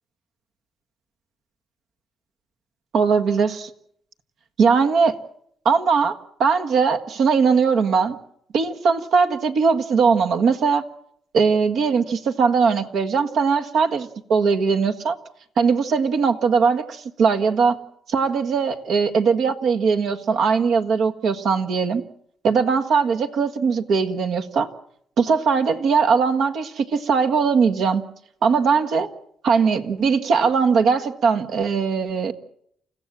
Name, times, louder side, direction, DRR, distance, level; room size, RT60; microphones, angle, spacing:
voice 1, 2.9-3.7 4.6-5.2 5.7-8.2 8.5-10.8 11.3-15.2 15.6-17.8 18.1-22.0 22.4-24.7 25.2-28.1 28.4-29.1 29.4-32.3, right 5 dB, 70° right, 7 dB, 1.7 m, -20 dB
29.5 x 15.5 x 7.6 m, 0.70 s
cardioid pair, 90°, 0 cm